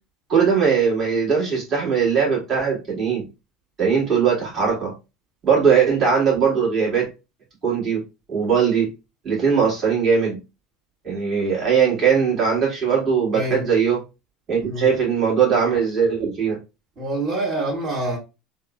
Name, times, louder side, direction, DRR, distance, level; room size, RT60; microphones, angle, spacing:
voice 1, 0.3-3.2 3.8-4.9 5.4-7.0 7.6-8.0 8.3-8.9 9.2-10.4 11.0-14.0 14.5-16.6, right 6 dB, 35° right, 1.6 m, -20 dB
voice 2, 13.3-13.7 14.6-14.9 17.0-18.2, right 1 dB, 60° right, 1.6 m, -26 dB
3.6 x 2.0 x 2.3 m
hypercardioid pair, 75°, 0 cm